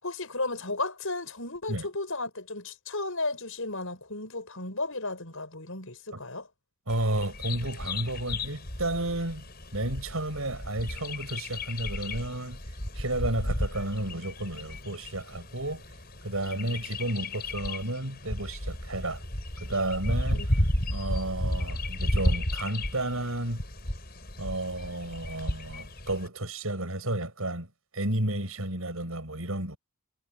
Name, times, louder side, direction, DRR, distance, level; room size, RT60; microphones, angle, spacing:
voice 1, 0.0-6.5 20.3-20.5 20.8-21.0, left 2 dB, 70° left, 6.4 m, -34 dB
Bird vocalization bird call bird song, 6.9-26.3, left 1 dB, 45° left, 5.8 m, -33 dB
voice 2, 6.9-9.4 9.7-12.6 12.9-15.8 16.2-19.2 19.6-20.5 20.9-23.6 24.4-29.8, right 1 dB, 75° right, 6.4 m, -32 dB
head